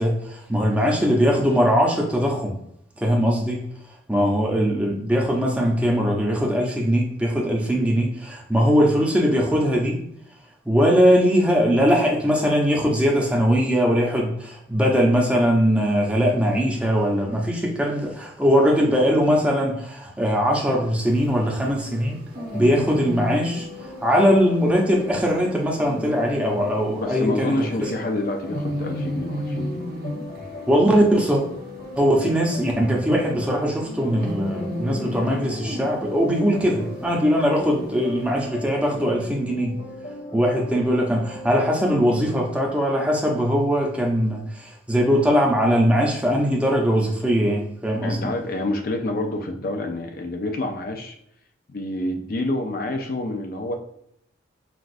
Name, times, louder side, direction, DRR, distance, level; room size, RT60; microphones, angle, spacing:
voice 1, 0.0-2.6 3.0-3.7 4.1-10.0 10.7-22.2 22.5-23.7 24.0-27.9 30.7-31.4 32.0-39.8 40.3-48.2, equal, 5° right, -1 dB, 0.6 m, -21 dB
sound 1, 20.9-38.5, equal, 50° right, 0.8 m, -36 dB
sound 2, 22.3-42.3, left 2 dB, 65° left, 1.0 m, -38 dB
voice 2, 27.0-29.9 48.0-51.2 51.7-53.7, left 1 dB, 50° left, 4 dB, 0.4 m, -28 dB
6.0 x 2.4 x 2.5 m, 0.74 s
head